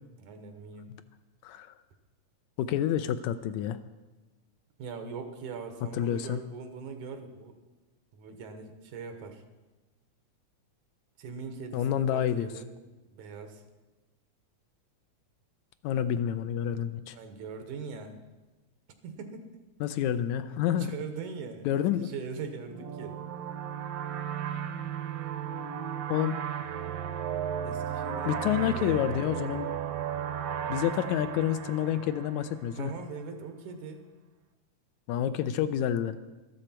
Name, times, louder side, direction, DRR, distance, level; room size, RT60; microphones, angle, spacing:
voice 1, 0.2-0.9 4.8-7.6 8.1-9.4 11.2-12.7 13.1-13.6 17.1-18.2 19.0-19.5 20.7-23.2 27.6-29.1 32.7-34.1, right 5 dB, 90° right, 6 dB, 2.6 m, -41 dB
voice 2, 1.4-1.7 2.6-3.8 5.9-6.4 11.7-12.5 15.8-17.2 19.8-20.9 21.7-22.1 26.1-26.4 28.3-29.7 30.7-32.9 35.1-36.2, left 10 dB, 85° left, 11 dB, 1.9 m, -28 dB
sound 1, 22.7-33.0, right 9 dB, 70° right, 1.6 m, -35 dB
13.0 x 13.0 x 4.4 m, 1.2 s
omnidirectional pair, 3.4 m